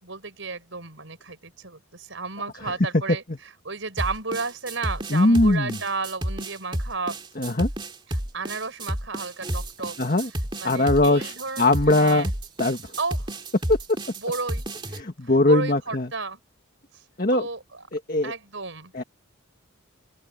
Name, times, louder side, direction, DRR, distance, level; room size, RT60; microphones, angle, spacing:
voice 1, 0.0-7.1 8.1-12.3 13.0-13.3 14.2-14.7 15.2-16.4 16.9-17.0 17.3-17.9 18.2-19.0, right 4 dB, 65° right, 4.9 m, -33 dB
sound 1, 4.0-15.0, right 1 dB, 25° right, 2.7 m, -31 dB
voice 2, 5.1-5.7 7.4-7.7 10.0-10.3 10.6-12.3 12.6-12.8 13.7-13.8 15.0-16.1 17.2-17.5 17.9-18.3 18.9-19.0, left 2 dB, 45° left, 1.6 m, -20 dB
open air
head